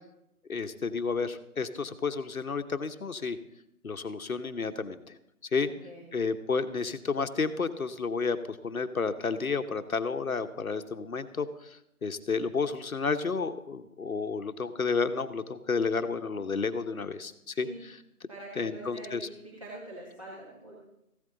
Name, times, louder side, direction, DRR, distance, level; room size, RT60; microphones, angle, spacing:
voice 1, 0.5-3.4 3.8-5.2 5.5-5.7 6.1-17.9 18.6-19.3, left 4 dB, 70° left, 9 dB, 1.1 m, -31 dB
voice 2, 5.6-6.1 17.5-17.8 18.3-20.8, right 1 dB, 20° right, -5 dB, 1.7 m, -44 dB
15.0 x 12.5 x 3.9 m, 0.83 s
figure-of-eight pair, 175°, 44 cm